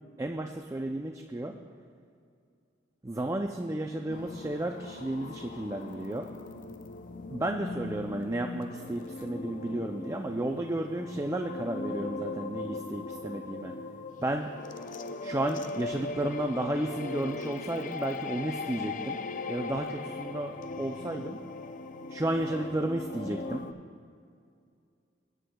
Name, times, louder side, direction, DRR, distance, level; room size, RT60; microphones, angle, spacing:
voice 1, 0.2-1.6 3.0-6.3 7.3-13.7 14.2-14.5 15.2-19.2 19.5-21.4 22.1-23.7, right 1 dB, 15° right, 3 dB, 0.4 m, -33 dB
sound 1, 4.1-23.7, left 3 dB, 45° left, 0.4 m, -39 dB
20.5 x 9.4 x 2.3 m, 2.3 s
head